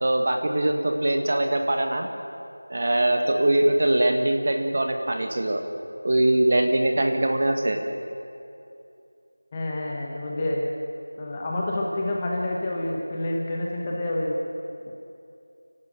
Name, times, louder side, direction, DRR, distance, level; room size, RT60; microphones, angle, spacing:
voice 1, 0.0-2.1 2.7-5.6 6.0-7.8, right 1 dB, 30° right, 4 dB, 1.6 m, -22 dB
voice 2, 9.5-10.7 11.2-14.4, left 1 dB, 10° left, -2 dB, 1.1 m, -28 dB
29.5 x 12.5 x 9.0 m, 2.6 s
figure-of-eight pair, 180°, 0 cm